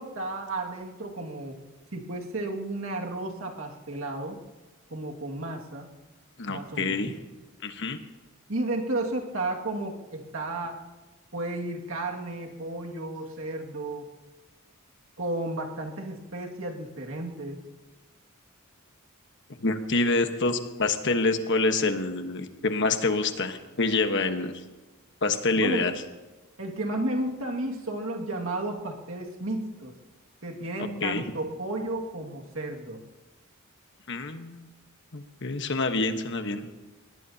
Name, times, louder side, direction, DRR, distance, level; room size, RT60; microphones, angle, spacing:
voice 1, 0.0-1.6 1.9-4.4 4.9-5.9 6.5-7.2 8.5-10.8 11.3-14.1 15.2-17.6 25.5-25.9 26.6-29.9 30.4-33.0, right 2 dB, 70° right, 1 dB, 2.1 m, -33 dB
voice 2, 6.4-7.1 7.6-8.0 19.6-24.5 25.2-25.9 30.8-31.2 34.1-34.7 35.1-36.7, left 3 dB, 55° left, 7 dB, 1.3 m, -27 dB
22.5 x 18.5 x 2.9 m, 1.2 s
head